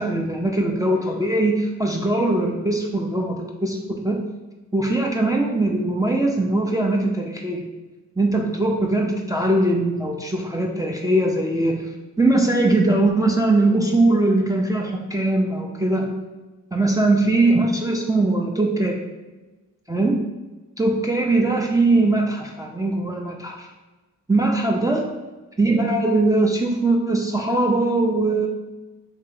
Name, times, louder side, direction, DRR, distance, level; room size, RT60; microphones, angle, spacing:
voice 1, 0.0-4.2 4.7-7.6 8.2-11.9 12.2-16.1 16.7-19.0 19.9-20.2 20.8-23.7 24.3-25.0 25.6-28.5, right 2 dB, 10° right, -1 dB, 0.5 m, -21 dB
3.2 x 2.8 x 3.9 m, 1.2 s
cardioid pair, 50°, 33 cm